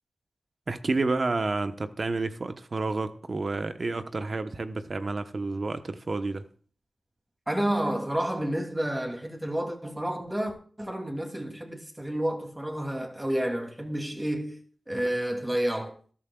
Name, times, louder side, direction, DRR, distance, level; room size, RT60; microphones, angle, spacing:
voice 1, 0.7-6.5, right 3 dB, 55° right, 1.1 m, -30 dB
voice 2, 7.5-14.6 14.9-15.9, right 1 dB, 20° right, 2.9 m, -30 dB
13.5 x 13.0 x 2.4 m
cardioid pair, 45°, 0 cm